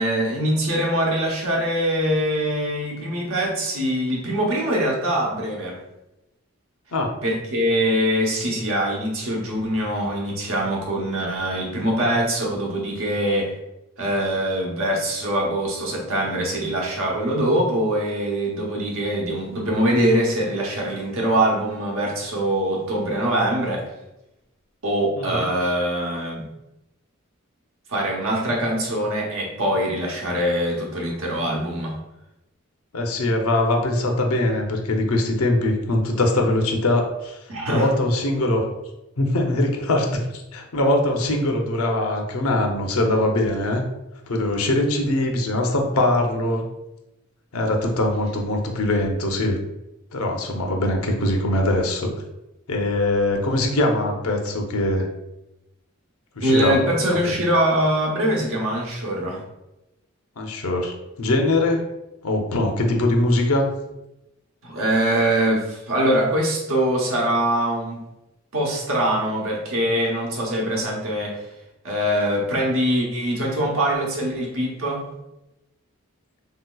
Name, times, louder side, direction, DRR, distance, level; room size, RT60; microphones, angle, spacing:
voice 1, 0.0-5.8 7.2-13.5 14.0-23.9 24.8-26.5 27.9-32.0 37.5-37.9 56.4-59.4 64.6-68.0 68.5-71.4 71.8-75.0, right 1 dB, 75° right, -1 dB, 0.9 m, -23 dB
voice 2, 25.2-25.5 32.9-37.4 37.7-38.6 39.2-43.8 44.3-46.6 47.5-49.6 50.1-52.1 52.7-55.1 56.4-56.8 60.4-61.8 62.2-63.7, left 1 dB, 85° left, 2 dB, 0.6 m, -22 dB
3.9 x 2.8 x 2.3 m, 0.93 s
head